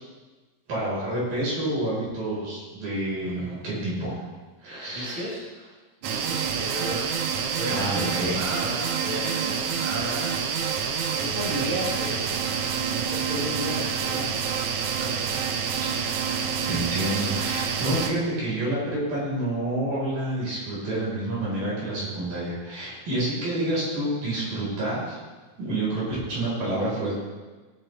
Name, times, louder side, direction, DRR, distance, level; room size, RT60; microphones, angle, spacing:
voice 1, 0.7-4.2 4.6-5.2 7.7-8.4 15.9-25.2 25.6-27.2, right 1 dB, 60° right, -7 dB, 6.2 m, -28 dB
voice 2, 3.2-3.7 4.9-5.4 6.0-10.3 10.9-14.6 14.9-15.4, right 1 dB, 40° right, -4 dB, 2.5 m, -34 dB
sound 1, 6.0-18.1, right 7 dB, 75° right, 1.7 m, -27 dB
19.5 x 8.9 x 3.4 m, 1.3 s
omnidirectional pair, 4.5 m